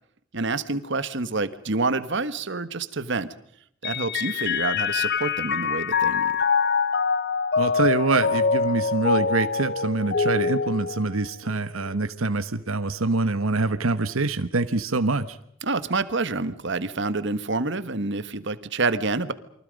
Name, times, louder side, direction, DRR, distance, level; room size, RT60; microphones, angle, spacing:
voice 1, 0.3-3.3 3.8-6.4 15.6-19.3, right 3 dB, 60° right, 13 dB, 1.4 m, -27 dB
Mallet percussion, 3.8-11.6, left 5 dB, 50° left, 0.8 m, -24 dB
voice 2, 7.6-15.4, right 3 dB, 90° right, 11 dB, 1.1 m, -25 dB
29.0 x 24.0 x 5.3 m, 0.71 s
head